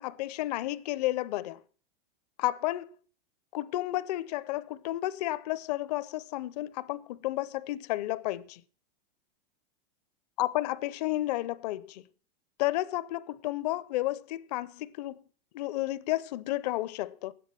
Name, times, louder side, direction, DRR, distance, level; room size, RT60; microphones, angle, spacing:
voice 1, 0.0-1.6 2.4-2.9 3.5-8.6 10.4-12.1 12.6-15.2 15.5-17.3, left 16 dB, 45° left, 0.6 m, -32 dB
11.0 x 9.5 x 7.4 m
supercardioid pair, 160°, 29 cm